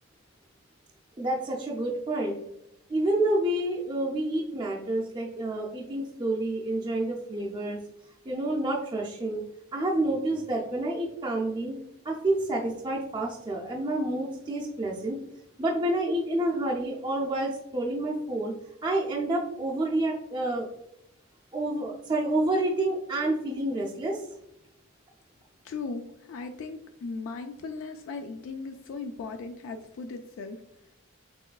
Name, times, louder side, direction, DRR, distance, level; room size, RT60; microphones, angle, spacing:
voice 1, 1.2-2.4 2.9-7.8 8.3-9.4 9.7-11.8 12.0-15.2 15.6-18.5 18.8-20.7 21.5-24.2, right 1 dB, 20° right, -2 dB, 0.4 m, -28 dB
voice 2, 25.6-30.6, left 4 dB, 65° left, 5 dB, 0.3 m, -37 dB
5.5 x 3.1 x 2.3 m, 0.83 s
head